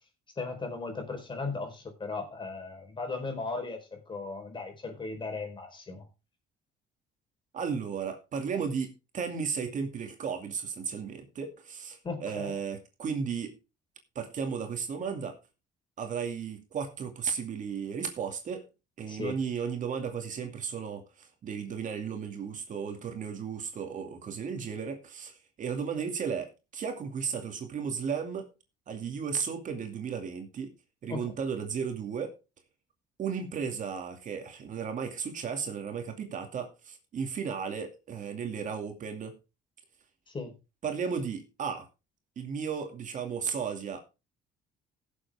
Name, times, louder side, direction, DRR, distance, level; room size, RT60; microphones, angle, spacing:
voice 1, 0.4-6.0 12.0-12.5 19.1-19.4 31.1-31.3 40.3-40.5, left 3 dB, 30° left, 5 dB, 4.5 m, -37 dB
voice 2, 7.5-13.6 14.2-15.4 16.0-18.6 19.0-28.5 28.9-30.7 31.0-32.3 33.2-39.4 40.8-41.8 42.4-44.0, right 6 dB, 50° right, 5 dB, 2.5 m, -34 dB
17.0 x 7.4 x 3.6 m, 0.29 s
cardioid pair, 110°, 17 cm